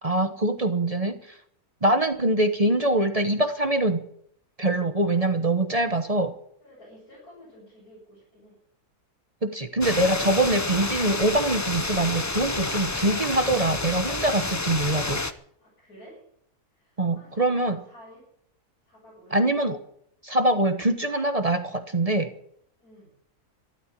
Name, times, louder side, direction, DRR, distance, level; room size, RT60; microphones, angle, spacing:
voice 1, 0.0-1.2 1.8-4.0 4.6-6.3 9.4-15.2 17.0-17.8 19.3-19.8 20.2-22.3, right 1 dB, 30° right, 8 dB, 1.0 m, -24 dB
voice 2, 6.6-8.6 15.6-16.2 16.7-18.3 18.8-19.4 22.8-23.1, equal, 80° left, -7 dB, 8.0 m, -51 dB
sound 1, 9.8-15.3, left 3 dB, 25° left, 0.3 m, -29 dB
13.0 x 12.0 x 8.4 m, 0.69 s
omnidirectional pair, 1.6 m